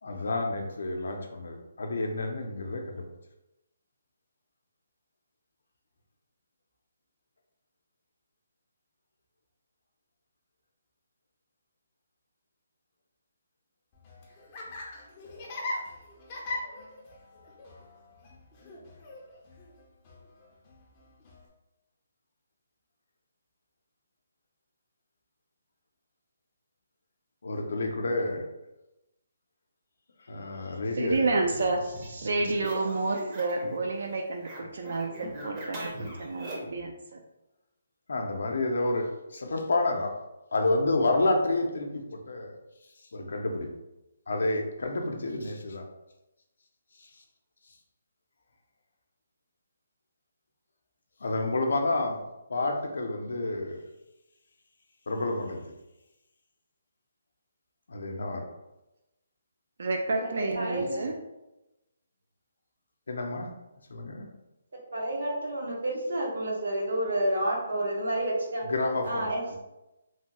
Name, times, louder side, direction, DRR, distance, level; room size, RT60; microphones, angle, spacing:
voice 1, 0.0-3.0 27.4-28.4 30.3-31.3 38.1-40.1 40.5-42.5 43.1-43.7 44.3-45.8 47.0-47.2 51.2-52.2 52.5-53.8 55.1-55.7 57.9-58.5 63.1-63.5 63.9-64.3 68.6-69.3, left 2 dB, 75° left, 3 dB, 0.5 m, -29 dB
Laughter, 13.9-21.5, left 2 dB, 25° left, 0.5 m, -41 dB
voice 2, 31.0-37.2 59.8-61.1, right 3 dB, 65° right, 3 dB, 0.3 m, -30 dB
sound 1, 31.1-33.8 34.0-36.8, right 2 dB, 25° right, 0.6 m, -40 dB
voice 3, 60.1-61.1 64.9-68.7 69.0-69.6, right 1 dB, 80° right, -3 dB, 1.1 m, -30 dB
3.1 x 2.2 x 2.9 m, 0.95 s
hypercardioid pair, 165°, 0 cm